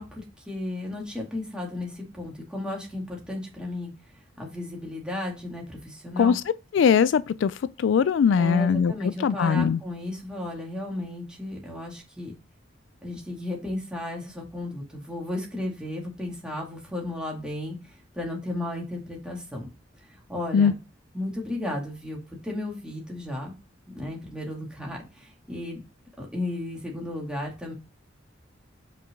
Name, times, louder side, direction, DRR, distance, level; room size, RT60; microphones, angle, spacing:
voice 1, 0.0-3.9 4.4-6.4 8.4-12.3 13.0-17.8 18.1-19.7 20.1-20.8 21.1-22.2 22.4-23.5 23.9-25.8 26.2-27.7, left 1 dB, 5° right, 2.1 m, -34 dB
voice 2, 6.7-9.8 20.5-20.7, left 6 dB, 70° left, 0.3 m, -21 dB
5.9 x 4.6 x 5.2 m
head